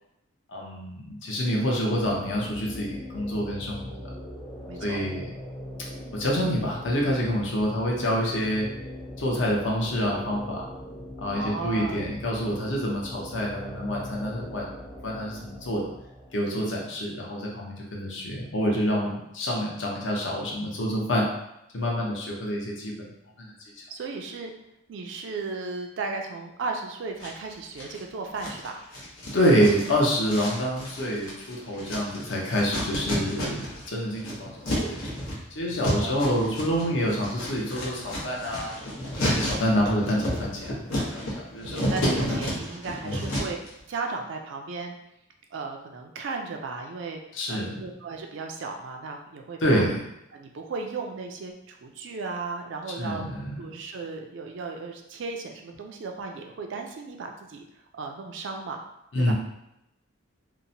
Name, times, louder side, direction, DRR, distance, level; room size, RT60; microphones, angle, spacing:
voice 1, 0.5-4.0 4.8-5.3 6.1-8.7 9.2-10.7 11.2-14.7 15.0-15.9 16.3-21.3 21.7-23.1 23.4-23.5 29.3-33.6 33.9-35.0 35.6-38.8 39.2-40.8 41.1-41.9 42.3-42.4 43.0-43.2 47.3-47.8 49.6-50.0 53.0-53.6 59.1-59.3, equal, 60° left, -2 dB, 0.6 m, -27 dB
sound 1, 1.9-16.4, equal, 20° left, 0.4 m, -40 dB
voice 2, 4.7-5.0 11.3-12.0 23.9-24.5 24.9-28.8 35.9-36.2 41.6-43.6 43.9-45.0 45.5-47.2 47.5-49.9 50.3-53.2 53.6-57.7 58.0-58.8 59.3-59.4, right 4 dB, 60° right, 3 dB, 0.3 m, -35 dB
sound 2, 27.2-28.0 28.4-33.9 34.1-43.7, equal, 85° left, 0.9 m, -31 dB
2.8 x 2.0 x 2.6 m, 0.83 s
head